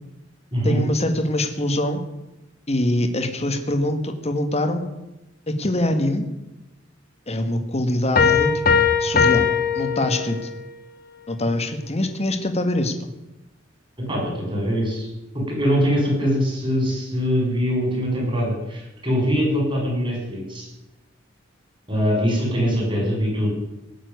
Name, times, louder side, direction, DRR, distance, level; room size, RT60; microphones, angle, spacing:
voice 1, 0.6-2.0 2.7-4.9 5.5-6.3 7.3-8.5 9.0-9.5 9.8-10.4 11.3-13.1, left 1 dB, 35° left, 7 dB, 1.8 m, -23 dB
sound 1, 8.2-10.7, left 6 dB, 50° left, 1.9 m, -20 dB
voice 2, 14.0-15.1 15.3-20.7 21.9-23.5, equal, 25° right, -2 dB, 6.8 m, -22 dB
18.0 x 7.5 x 9.6 m, 0.98 s
head